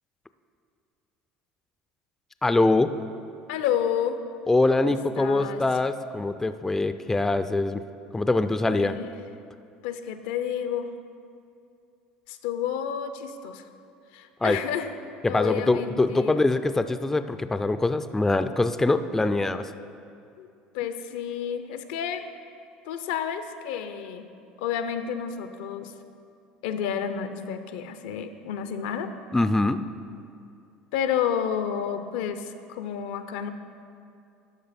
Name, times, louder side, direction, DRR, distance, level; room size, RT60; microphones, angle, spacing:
voice 1, 2.4-2.9 4.5-7.8 8.1-9.0 14.4-14.6 15.2-19.7 29.3-29.8, left 2 dB, 10° left, 11 dB, 0.3 m, -23 dB
voice 2, 3.5-4.2 4.8-5.7 8.7-9.1 9.8-10.9 12.3-13.7 14.1-15.0 15.2-16.4 20.4-20.5 20.7-22.3 22.8-24.3 24.6-25.9 26.6-29.1 30.9-33.5, left 8 dB, 80° left, 10 dB, 0.5 m, -30 dB
12.0 x 5.0 x 4.2 m, 2.5 s
supercardioid pair, 90°, 3 cm